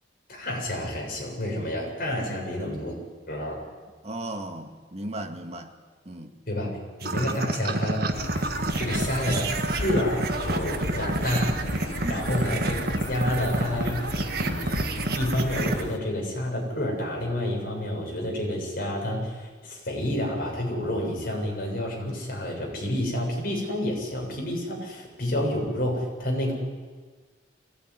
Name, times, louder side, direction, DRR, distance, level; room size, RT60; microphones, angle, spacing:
voice 1, 0.3-2.9 3.3-3.6 6.5-8.1 8.8-11.6 12.1-12.7 13.1-14.0 14.3-26.5, left 1 dB, 55° left, -1 dB, 7.2 m, -29 dB
voice 2, 4.0-5.7 6.1-6.3 7.2-7.5 12.0-12.3, right 1 dB, 35° right, 4 dB, 2.1 m, -36 dB
sound 1, 7.0-15.8, right 2 dB, 60° right, 1.7 m, -29 dB
sound 2, 8.1-16.0, left 1 dB, 85° left, 1.4 m, -35 dB
23.5 x 17.5 x 9.8 m, 1.5 s
head